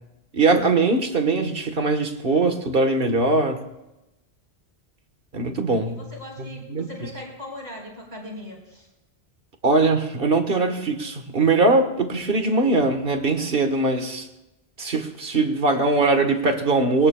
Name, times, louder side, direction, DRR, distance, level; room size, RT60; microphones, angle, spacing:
voice 1, 0.3-3.6 5.3-6.1 6.4-6.9 9.6-14.3 14.8-17.1, right 3 dB, 60° right, 6 dB, 1.5 m, -21 dB
voice 2, 5.8-8.9, left 1 dB, 45° right, -2 dB, 4.5 m, -39 dB
22.5 x 18.5 x 2.3 m, 0.97 s
omnidirectional pair, 1.1 m